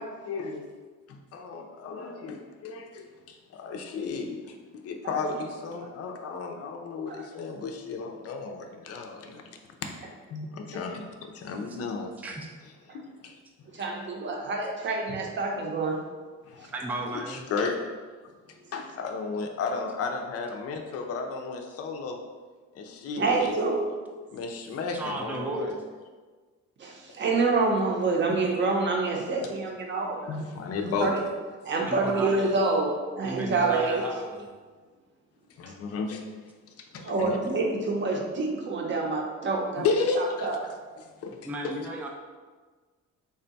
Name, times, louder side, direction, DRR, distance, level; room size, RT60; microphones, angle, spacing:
voice 1, 0.3-0.7 1.1-9.4 10.3-12.1 12.9-13.4 16.4-16.7 17.1-17.8 18.7-22.2 22.7-23.6 24.3-25.8 28.3-28.4 30.3-31.1 35.6-36.2 36.8-37.4 39.8-40.5 41.0-41.7, left 4 dB, 50° left, 4 dB, 0.5 m, -33 dB
voice 2, 13.7-16.0 23.2-23.9 26.8-30.3 31.0-31.2 31.6-34.0 37.0-39.9 40.2-40.6, right 3 dB, 35° right, 0 dB, 0.7 m, -27 dB
voice 3, 16.7-17.4 24.9-25.8 31.7-32.5 33.2-34.5 41.4-42.1, right 2 dB, 5° right, 0 dB, 0.3 m, -34 dB
3.6 x 2.2 x 3.9 m, 1.4 s
cardioid pair, 105°, 31 cm